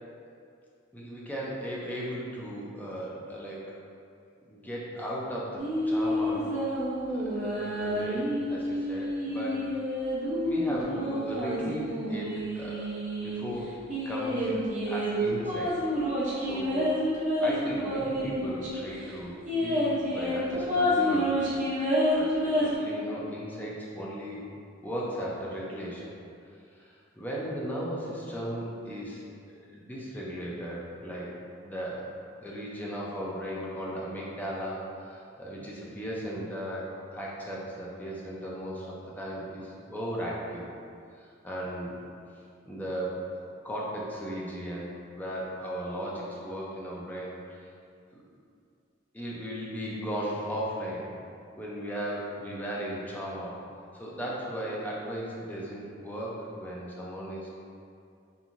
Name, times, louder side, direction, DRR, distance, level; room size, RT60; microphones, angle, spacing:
voice 1, 0.9-3.7 4.5-6.5 7.1-9.8 10.4-14.5 14.9-15.8 16.4-17.0 17.4-21.6 22.1-24.4 24.8-26.1 26.8-29.2 29.5-31.3 31.6-32.1 32.4-40.7 41.1-42.0 42.7-43.3 43.6-44.9 45.2-47.3 49.1-51.2 51.6-53.6 53.9-57.5, equal, 10° left, -5 dB, 0.4 m, -36 dB
sound 1, 5.6-13.4 13.9-18.8 19.1-19.2 19.5-22.8, equal, 40° right, 0.6 m, -29 dB
2.9 x 2.6 x 2.5 m, 2.4 s
head